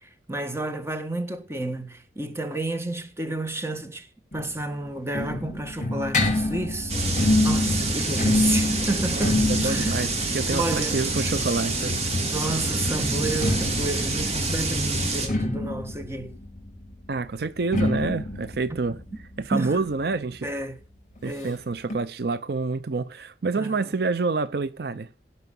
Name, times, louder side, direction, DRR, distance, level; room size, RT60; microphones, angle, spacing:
voice 1, 0.0-4.1 4.3-10.0 10.5-11.0 12.3-16.4 19.5-19.9 20.4-20.8 21.2-21.6 23.6-23.8, right 2 dB, 15° right, 1.5 m, -31 dB
sound 1, 4.3-12.0 13.1-20.5 20.8-20.9 21.1-21.2 21.9-22.0, left 1 dB, 45° left, 5.0 m, -27 dB
sound 2, 6.9-15.3, right 2 dB, 35° right, 2.9 m, -26 dB
voice 2, 9.1-12.0 17.1-19.0 19.4-20.5 21.2-25.1, right 3 dB, 60° right, 0.6 m, -28 dB
17.0 x 5.8 x 5.4 m
head